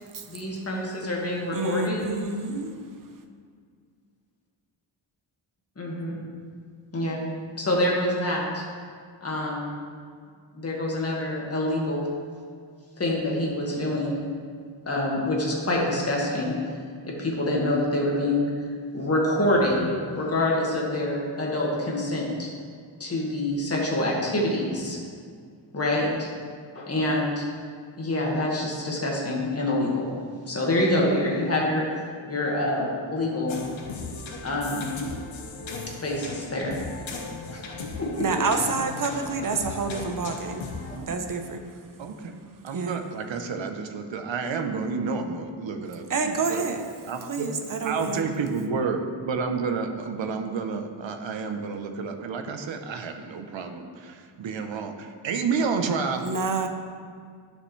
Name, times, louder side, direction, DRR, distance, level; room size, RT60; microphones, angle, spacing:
voice 1, 0.3-2.1 5.8-6.2 6.9-7.2 7.6-8.6 9.2-9.8 10.5-12.1 13.0-14.2 14.9-16.5 17.1-18.5 18.9-19.9 20.1-22.5 23.0-25.0 25.7-26.3 26.8-27.4 28.0-30.1 30.5-31.9 32.3-33.6 34.4-34.9 36.0-36.8 37.5-37.6 38.0-38.1 38.4-38.5, left 1 dB, 30° left, -3 dB, 1.7 m, -26 dB
voice 2, 1.5-2.7 38.2-40.6 41.1-41.6 42.7-43.0 46.1-46.8 47.3-48.2 56.2-56.7, right 4 dB, 45° right, 6 dB, 0.8 m, -28 dB
sound 1, 33.5-41.0, left 3 dB, 80° left, 1.0 m, -37 dB
voice 3, 42.0-46.7 47.1-47.5 47.8-56.3, right 5 dB, 75° right, 6 dB, 0.8 m, -30 dB
11.0 x 6.6 x 3.2 m, 2.1 s
wide cardioid pair, 150°, 46 cm